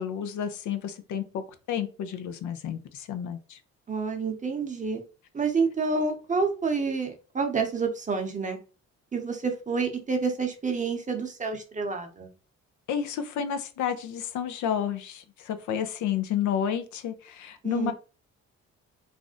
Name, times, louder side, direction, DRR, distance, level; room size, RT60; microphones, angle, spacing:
voice 1, 0.0-3.6 12.9-17.9, left 8 dB, 75° left, 0.5 m, -31 dB
voice 2, 3.9-5.0 5.3-8.6 9.1-12.3 17.6-17.9, right 4 dB, 25° right, 0.7 m, -28 dB
2.5 x 2.0 x 3.6 m
cardioid pair, 90°, 30 cm